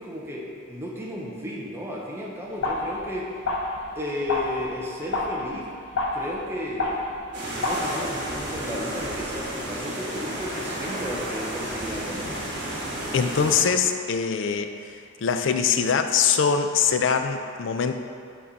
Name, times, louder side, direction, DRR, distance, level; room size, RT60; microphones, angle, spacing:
voice 1, 0.0-3.3 3.9-5.7 6.1-7.1 7.4-12.4, left 1 dB, 10° right, -4 dB, 0.7 m, -34 dB
sound 1, 2.6-7.8, left 2 dB, 80° left, 0.8 m, -30 dB
sound 2, 7.3-13.6, right 1 dB, 55° right, 1.4 m, -32 dB
voice 2, 13.1-14.7 15.2-18.0, left 6 dB, 60° left, 7 dB, 0.4 m, -23 dB
8.4 x 3.7 x 4.0 m, 2.3 s
head